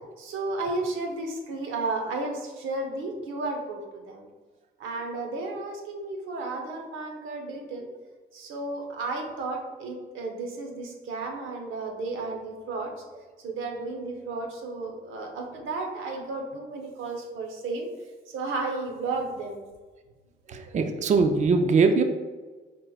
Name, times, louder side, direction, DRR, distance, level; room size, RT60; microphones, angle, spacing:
voice 1, 0.2-4.3 4.8-7.9 8.3-12.9 13.4-17.9 18.3-19.6, right 3 dB, 85° right, 2 dB, 0.8 m, -33 dB
voice 2, 20.5-22.0, right 4 dB, 35° right, 6 dB, 0.4 m, -21 dB
4.7 x 4.5 x 2.3 m, 1.3 s
cardioid pair, 90°, 20 cm